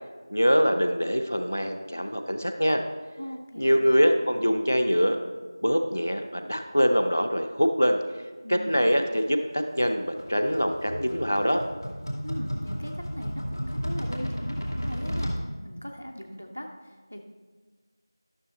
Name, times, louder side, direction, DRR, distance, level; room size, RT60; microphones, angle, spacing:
voice 1, 0.3-2.8 3.6-5.2 5.6-8.0 8.5-11.6, equal, 30° left, 6 dB, 0.5 m, -24 dB
voice 2, 3.2-3.9 8.4-9.0 12.2-15.3 15.6-17.2, equal, 20° right, 3 dB, 0.4 m, -39 dB
sound 1, 9.8-15.4, equal, 60° left, 2.5 m, -33 dB
12.0 x 6.5 x 3.9 m, 1.4 s
figure-of-eight pair, 180°, 2 cm